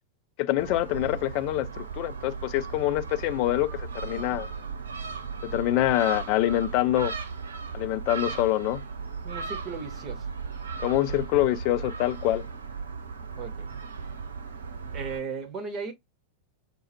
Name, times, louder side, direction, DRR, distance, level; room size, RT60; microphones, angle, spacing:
voice 1, 0.4-4.5 5.4-7.1 7.7-8.8 10.8-12.5, left 15 dB, 45° left, 0.4 m, -25 dB
Gull seagull, 0.6-15.2, right 5 dB, 70° right, 0.9 m, -36 dB
voice 2, 4.0-4.7 9.2-10.3 13.4-13.7 14.9-15.9, right 5 dB, 30° right, 1.4 m, -37 dB
6.2 x 2.2 x 3.0 m
figure-of-eight pair, 90°, 0 cm